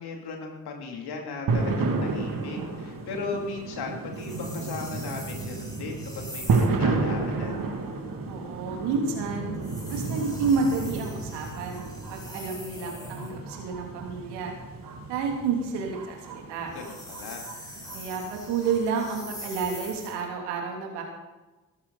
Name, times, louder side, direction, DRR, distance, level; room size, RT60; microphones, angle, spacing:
voice 1, 0.0-7.6 16.6-17.4, left 4 dB, 70° left, 1 dB, 3.2 m, -37 dB
sound 1, 1.5-19.5, right 3 dB, 55° right, 2.6 m, -32 dB
sound 2, 4.1-6.8 9.5-13.4 16.6-20.3, left 1 dB, 10° left, 5.5 m, -44 dB
voice 2, 8.3-9.5 9.9-11.8 12.1-14.5 15.1-16.7 17.9-21.0, right 5 dB, 80° right, 1 dB, 3.1 m, -30 dB
17.5 x 14.5 x 4.2 m, 1.1 s
hypercardioid pair, 40°, 41 cm